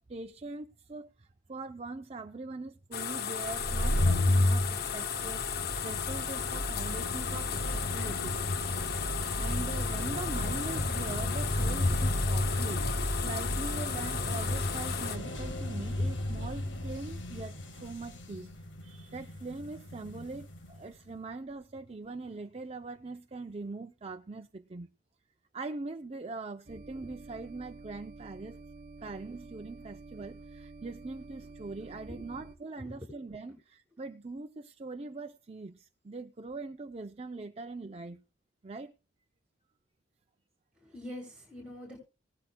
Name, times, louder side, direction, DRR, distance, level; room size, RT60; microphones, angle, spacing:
voice 1, 0.0-5.5 5.8-8.4 9.4-12.9 13.2-18.5 18.8-24.9 25.5-28.6 29.0-38.2 38.6-38.9, right 3 dB, 35° right, 0.6 m, -42 dB
sound 1, 2.9-15.2, left 8 dB, 55° left, 0.7 m, -35 dB
sound 2, 3.4-20.8, left 1 dB, 80° left, 1.7 m, -32 dB
sound 3, 26.7-32.6, right 3 dB, 50° right, 1.1 m, -49 dB
voice 2, 31.9-32.2 32.7-33.1 40.8-42.0, left 1 dB, 5° right, 7.6 m, -45 dB
18.5 x 13.0 x 2.3 m
head